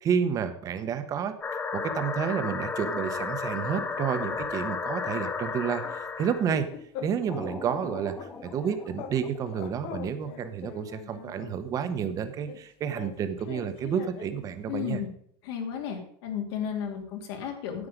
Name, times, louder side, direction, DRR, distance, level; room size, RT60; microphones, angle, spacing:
voice 1, 0.0-6.7 7.0-15.0, right 7 dB, 25° right, 10 dB, 1.0 m, -30 dB
sound 1, 1.4-6.5 7.3-9.7, left 4 dB, 15° left, 0.6 m, -34 dB
sound 2, 3.3-4.6 5.0-5.2 5.5-7.4 7.7-9.2 9.5-11.6 12.5-14.5, left 9 dB, 45° left, 0.9 m, -43 dB
voice 2, 14.7-15.1 15.4-17.9, left 8 dB, 75° left, 3 dB, 2.7 m, -33 dB
9.9 x 8.6 x 5.0 m, 0.67 s
supercardioid pair, 170°, 13 cm